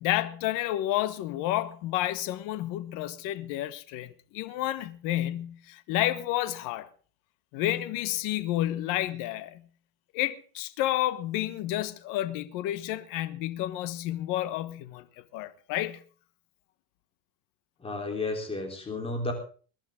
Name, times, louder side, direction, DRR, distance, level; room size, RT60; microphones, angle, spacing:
voice 1, 0.0-6.9 7.5-9.6 10.1-15.0 15.3-16.0, left 14 dB, 55° left, 1.3 m, -30 dB
voice 2, 17.8-19.3, left 2 dB, 15° left, 3.6 m, -32 dB
22.5 x 11.5 x 3.7 m
cardioid pair, 160°, 37 cm